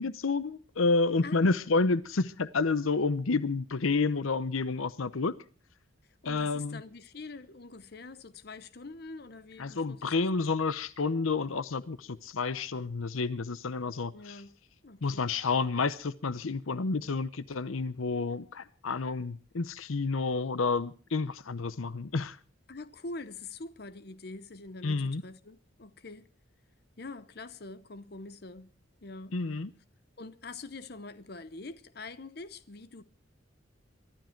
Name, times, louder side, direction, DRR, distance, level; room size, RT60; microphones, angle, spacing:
voice 1, 0.0-5.3 6.2-6.8 9.6-14.4 15.0-22.4 24.8-25.2 29.3-29.7, left 3 dB, 85° left, 0.8 m, -30 dB
voice 2, 1.2-1.6 6.2-10.1 14.1-14.5 14.8-15.2 22.7-26.3 27.0-28.7 29.0-29.4 30.2-33.0, left 3 dB, 50° left, 0.8 m, -44 dB
23.5 x 12.0 x 4.5 m
head